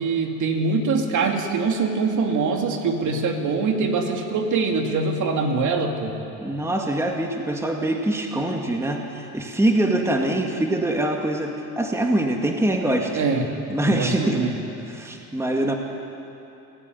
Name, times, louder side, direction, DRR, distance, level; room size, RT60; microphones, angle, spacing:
voice 1, 0.0-6.2 13.1-13.5 13.8-14.6, right 4 dB, 55° right, 3 dB, 2.7 m, -23 dB
voice 2, 6.4-13.2 13.7-14.4 14.9-15.7, right 1 dB, 5° right, 2 dB, 2.0 m, -24 dB
27.5 x 15.0 x 9.4 m, 2.9 s
cardioid pair, 125°, 36 cm